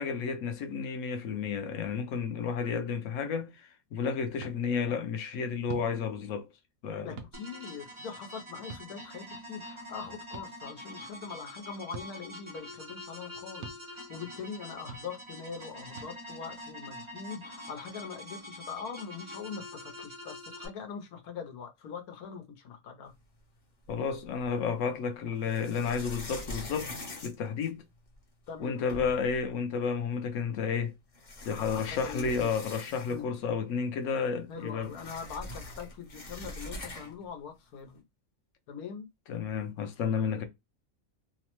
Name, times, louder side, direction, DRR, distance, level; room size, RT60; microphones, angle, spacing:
voice 1, 0.0-6.5 6.8-7.1 23.9-26.9 27.2-27.8 28.6-30.9 31.4-34.9 39.3-40.4, left 6 dB, 65° left, 0.9 m, -31 dB
sound 1, 4.4-4.5 5.7-5.9 7.2-7.3 8.7-8.9 10.3-10.5 11.9-12.1 13.6-13.8 14.9-15.0 16.0-16.1, right 5 dB, 70° right, 0.9 m, -42 dB
voice 2, 7.0-23.1 28.5-28.8 31.5-32.5 33.1-33.3 34.5-38.0 38.7-39.1 40.1-40.4, left 6 dB, 85° left, 1.2 m, -42 dB
sound 2, 7.3-20.7, left 1 dB, 30° right, 0.5 m, -45 dB
sound 3, 23.9-24.6 25.4-28.2 28.6-28.7 28.9-29.4 30.4-30.5 31.1-33.4 33.7-33.8 34.1-37.3, left 1 dB, 40° left, 0.7 m, -43 dB
3.1 x 2.0 x 2.9 m
omnidirectional pair, 1.5 m